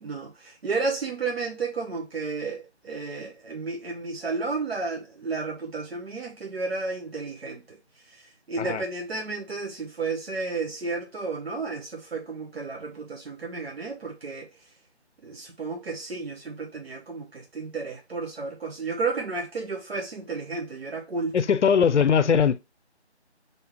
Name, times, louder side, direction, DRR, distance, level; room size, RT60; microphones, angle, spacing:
voice 1, 0.0-7.8 8.1-14.5 15.2-21.3, right 4 dB, 60° right, 0.9 m, -32 dB
voice 2, 21.3-22.6, left 7 dB, 85° left, 0.6 m, -20 dB
3.6 x 2.8 x 4.4 m
figure-of-eight pair, 165°, 34 cm